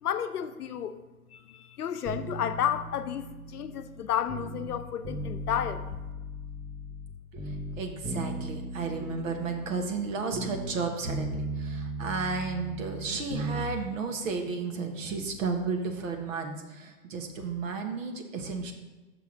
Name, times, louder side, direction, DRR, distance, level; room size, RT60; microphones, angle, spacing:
voice 1, 0.0-1.0 1.3-6.0, left 9 dB, 80° left, 10 dB, 0.7 m, -32 dB
sound 1, 2.1-4.7 5.0-7.1 7.4-10.8 11.0-13.7 14.0-14.1, right 1 dB, 5° right, 0.5 m, -37 dB
voice 2, 7.3-18.7, right 4 dB, 55° right, 4 dB, 1.2 m, -33 dB
6.0 x 4.7 x 5.8 m, 1.2 s
hypercardioid pair, 125°, 45 cm